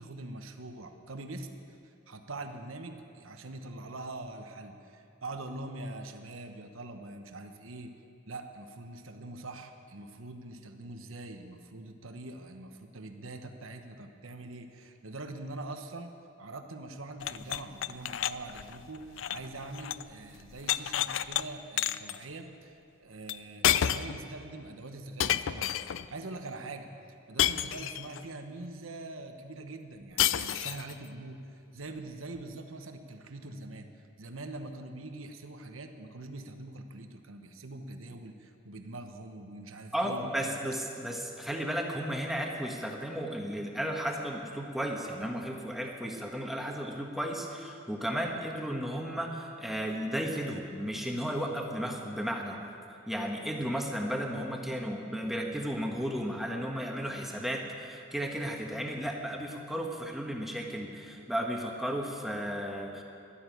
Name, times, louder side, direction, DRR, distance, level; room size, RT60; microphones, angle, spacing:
voice 1, 0.0-7.9 8.3-16.1 16.4-26.9 27.3-40.6, right 2 dB, 85° right, 6 dB, 1.1 m, -43 dB
sound 1, 17.2-20.1 20.4-21.4 21.8-22.2 23.3-23.4 23.6-24.2 25.2-26.1 27.4-28.2 30.2-30.9, left 11 dB, 70° left, 0.4 m, -30 dB
voice 2, 39.9-52.6 53.1-63.0, equal, ahead, 1 dB, 1.5 m, -34 dB
13.0 x 12.0 x 9.2 m, 2.6 s
head